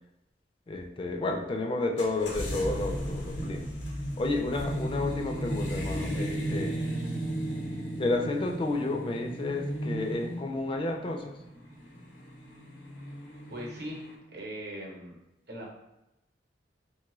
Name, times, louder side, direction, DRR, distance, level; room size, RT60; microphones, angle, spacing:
voice 1, 0.7-3.7 4.2-6.8 8.0-11.4, left 2 dB, 30° left, 3 dB, 0.3 m, -31 dB
sound 1, 2.0-14.1, equal, 90° left, 0.8 m, -35 dB
voice 2, 13.5-14.0 14.3-15.2 15.5-15.7, equal, 65° right, -2 dB, 0.8 m, -39 dB
3.1 x 2.3 x 3.0 m, 0.94 s
head